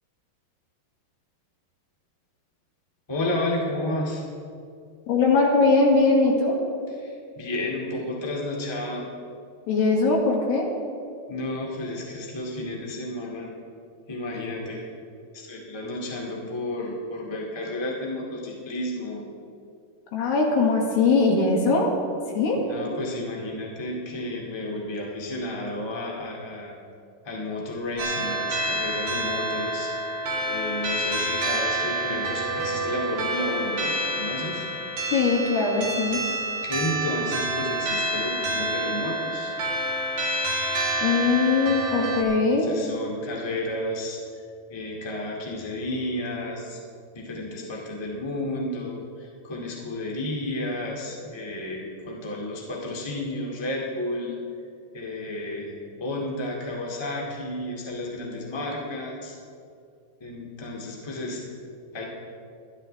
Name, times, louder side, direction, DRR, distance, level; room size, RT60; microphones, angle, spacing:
voice 1, 3.1-4.2 6.9-9.1 11.3-13.5 14.1-14.8 15.3-19.3 22.6-26.7 27.2-29.9 30.5-34.7 36.6-39.5 42.5-44.2 44.7-46.8 47.1-54.4 54.9-59.4 60.2-61.4 61.9-62.0, left 1 dB, 25° left, -2 dB, 0.6 m, -32 dB
voice 2, 5.1-6.6 9.7-10.7 20.1-21.9 22.4-22.6 35.1-36.2 41.0-42.7, left 3 dB, 90° left, -1 dB, 4.0 m, -21 dB
sound 1, 28.0-42.2, right 1 dB, 60° right, 3.9 m, -28 dB
23.0 x 12.0 x 3.3 m, 2.4 s
omnidirectional pair, 4.6 m